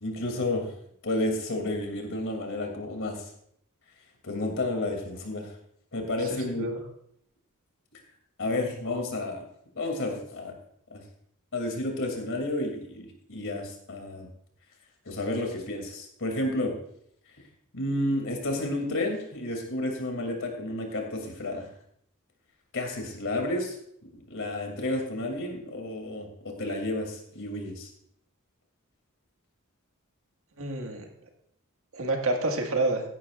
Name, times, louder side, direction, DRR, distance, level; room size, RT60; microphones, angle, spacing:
voice 1, 0.0-0.7 1.0-3.2 4.2-5.5 5.9-6.6 8.4-9.4 9.7-10.5 10.9-11.0 11.5-14.3 15.0-16.7 17.7-21.7 22.7-23.7 24.3-26.3 26.6-27.9, left 1 dB, 65° left, 3 dB, 2.8 m, -31 dB
voice 2, 6.3-6.8 30.6-31.0 31.9-33.0, right 2 dB, 70° right, 3 dB, 1.8 m, -28 dB
15.5 x 11.0 x 2.5 m, 0.69 s
head